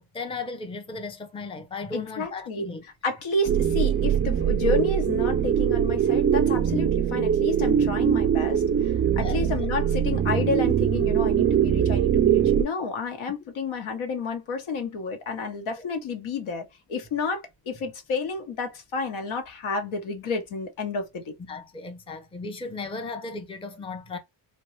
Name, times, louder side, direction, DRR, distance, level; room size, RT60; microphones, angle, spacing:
voice 1, 0.0-2.8 9.1-9.6 21.5-24.2, left 3 dB, 10° left, 0.6 m, -36 dB
voice 2, 1.9-2.7 3.0-21.3, left 4 dB, 70° left, 1.0 m, -30 dB
sound 1, 3.5-12.6, right 9 dB, 30° right, 0.4 m, -22 dB
2.9 x 2.2 x 3.1 m
cardioid pair, 80°, 50 cm